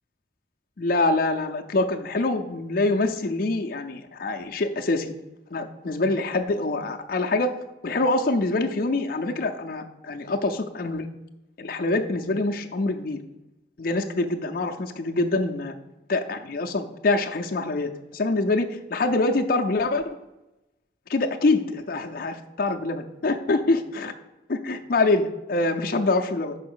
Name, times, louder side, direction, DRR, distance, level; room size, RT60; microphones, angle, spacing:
voice 1, 0.8-5.1 5.5-7.5 7.8-11.1 11.6-13.2 13.8-15.7 16.1-20.2 21.1-24.1 24.5-26.6, left 2 dB, 55° left, 4 dB, 0.5 m, -25 dB
5.7 x 4.7 x 6.2 m, 0.99 s
head